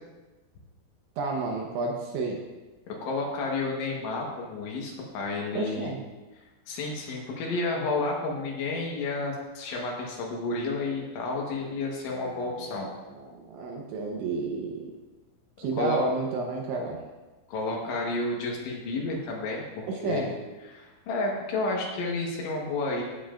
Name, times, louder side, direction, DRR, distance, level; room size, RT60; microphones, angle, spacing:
voice 1, 1.2-2.4 5.5-6.0 12.1-12.6 13.2-14.9 15.6-17.0 19.9-20.3, right 3 dB, 75° right, 0 dB, 3.0 m, -31 dB
voice 2, 2.9-5.9 6.7-12.9 15.7-16.0 17.5-20.3 20.7-23.0, left 3 dB, 70° left, -1 dB, 3.5 m, -31 dB
15.5 x 8.1 x 2.5 m, 1.2 s
omnidirectional pair, 6.0 m